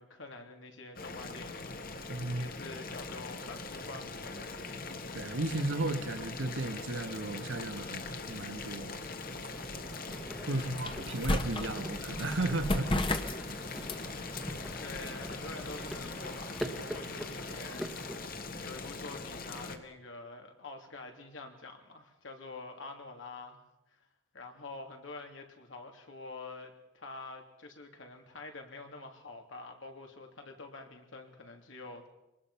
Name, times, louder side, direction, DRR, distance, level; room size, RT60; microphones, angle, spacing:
voice 1, 0.0-4.6 10.4-11.3 14.8-23.6 23.9-24.0 24.3-32.1, left 3 dB, 80° left, 3 dB, 3.2 m, -47 dB
Boiling, 1.0-19.8, left 3 dB, 50° left, 1.7 m, -42 dB
voice 2, 2.1-2.5 5.1-8.9 10.5-12.9, right 2 dB, 75° right, 9 dB, 1.5 m, -34 dB
sound 1, 7.6-16.7, left 1 dB, 25° left, 1.3 m, -38 dB
sound 2, 9.5-18.3, equal, ahead, 1.3 m, -44 dB
24.5 x 19.5 x 5.8 m, 0.95 s
head